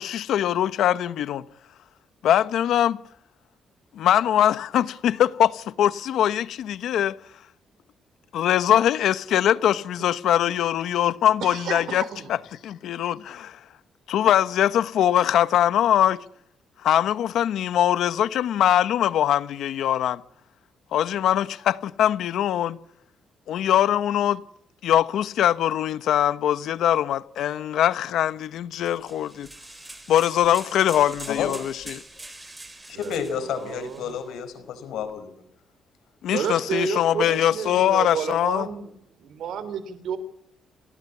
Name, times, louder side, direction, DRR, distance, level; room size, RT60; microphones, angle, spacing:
voice 1, 0.0-1.4 2.2-3.0 3.9-7.2 8.3-12.4 12.6-13.6 14.1-16.2 16.8-20.2 20.9-22.8 23.5-24.4 24.8-29.5 30.1-32.0 36.2-38.7, left 11 dB, 70° left, 1.1 m, -22 dB
voice 2, 11.4-12.3 32.9-34.1 36.3-38.9 39.2-40.2, right 7 dB, 65° right, 3.5 m, -31 dB
sound 1, 28.8-34.2, right 2 dB, 10° right, 4.0 m, -43 dB
voice 3, 32.9-35.3, left 8 dB, 85° left, 5.0 m, -30 dB
28.5 x 18.5 x 8.5 m
cardioid pair, 170°, 0 cm